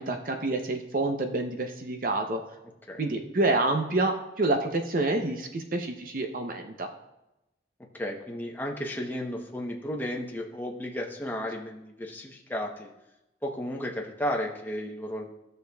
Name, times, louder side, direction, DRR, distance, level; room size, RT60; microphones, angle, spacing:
voice 1, 0.0-2.4 3.0-6.9, right 2 dB, 45° right, 4 dB, 0.6 m, -28 dB
voice 2, 7.9-12.9 13.4-15.3, equal, 10° left, 0 dB, 0.8 m, -33 dB
14.5 x 6.6 x 2.3 m, 0.92 s
head